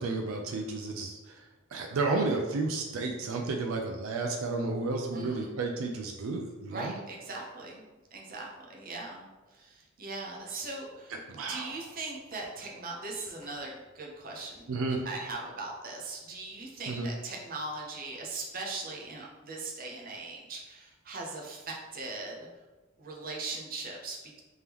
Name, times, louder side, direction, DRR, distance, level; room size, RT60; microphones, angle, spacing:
voice 1, 0.0-1.4 1.7-7.0 11.3-11.8 14.7-15.0 16.9-17.1, right 3 dB, 85° right, 2 dB, 0.4 m, -32 dB
voice 2, 5.1-5.5 6.7-7.8 8.1-14.7 15.0-22.5 23.0-24.4, right 3 dB, 45° right, -1 dB, 0.7 m, -40 dB
sound 1, 10.5-10.7 11.9-12.0 12.2-12.5 13.1-13.6 14.4-14.6 15.1-15.3 15.8-15.9 16.7-17.1, equal, 20° left, 0.5 m, -50 dB
3.5 x 3.4 x 2.9 m, 1.2 s
head